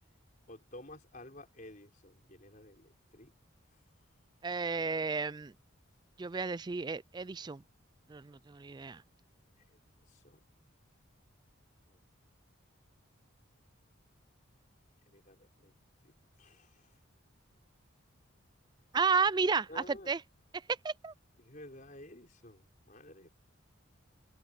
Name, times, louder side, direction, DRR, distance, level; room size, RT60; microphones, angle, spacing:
voice 1, 0.5-3.3 10.1-10.4 11.9-12.0 15.1-15.7 16.0-16.1 16.4-16.8 19.7-20.1 21.4-23.3, left 1 dB, 40° left, 5.0 m, -52 dB
voice 2, 4.4-5.5 6.2-7.6 8.1-9.0 18.9-20.2 20.8-21.1, right 4 dB, 20° right, 0.3 m, -32 dB
open air
head